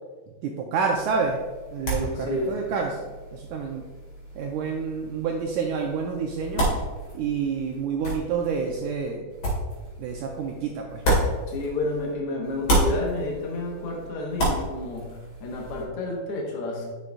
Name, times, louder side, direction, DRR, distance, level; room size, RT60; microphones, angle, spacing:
voice 1, 0.4-1.4 1.7-3.8 4.4-6.7 7.1-9.2 10.0-11.0, right 5 dB, 85° right, 1 dB, 1.8 m, -28 dB
sound 1, 1.0-12.1 12.4-15.8, equal, 45° left, 2.8 m, -31 dB
voice 2, 2.1-2.5 11.5-16.9, left 2 dB, 65° left, -1 dB, 1.4 m, -30 dB
9.9 x 6.5 x 2.3 m, 1.3 s
omnidirectional pair, 4.0 m